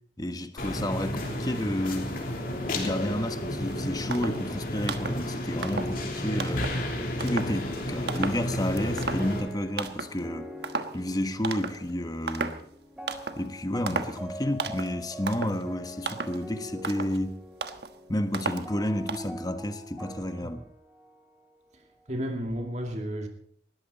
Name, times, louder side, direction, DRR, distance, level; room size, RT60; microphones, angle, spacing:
voice 1, 0.2-2.2 2.7-6.7 7.2-10.5 10.9-12.6 13.4-17.4 18.1-20.6, left 1 dB, 20° left, 1.2 m, -31 dB
sound 1, 0.6-9.4, left 1 dB, 55° left, 3.4 m, -32 dB
voice 2, 1.2-1.7 20.4-20.5 21.7-23.3, equal, 40° right, 2.1 m, -34 dB
sound 2, 3.7-3.8 4.1-4.5 4.8-5.3 5.6-6.0 6.4-6.8 7.2-7.6 8.1-8.5 8.8-9.5 9.8-10.2 10.6-11.0 11.4-11.9 12.3-12.7 13.1-13.5 13.9-14.2 14.6-15.0 15.3-15.6 16.1-16.4 16.8-17.2 17.6-17.9 18.3-18.7 19.1-19.3, right 4 dB, 70° right, 1.3 m, -34 dB
sound 3, 8.1-22.1, equal, 5° right, 2.5 m, -43 dB
20.0 x 14.5 x 4.1 m
head